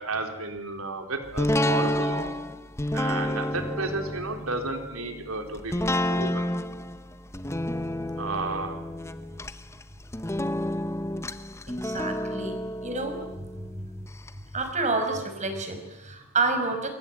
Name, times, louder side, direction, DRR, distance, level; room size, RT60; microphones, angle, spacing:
voice 1, 0.0-2.4 2.9-5.7 6.1-6.5 8.2-8.8, right 3 dB, 65° right, 5 dB, 4.2 m, -32 dB
sound 1, 1.4-14.3 14.7-14.8, left 1 dB, 10° left, 0.9 m, -30 dB
voice 2, 11.7-12.6 12.8-13.2 14.5-16.9, right 3 dB, 35° right, 6 dB, 5.3 m, -28 dB
28.0 x 23.0 x 9.2 m, 1.0 s
head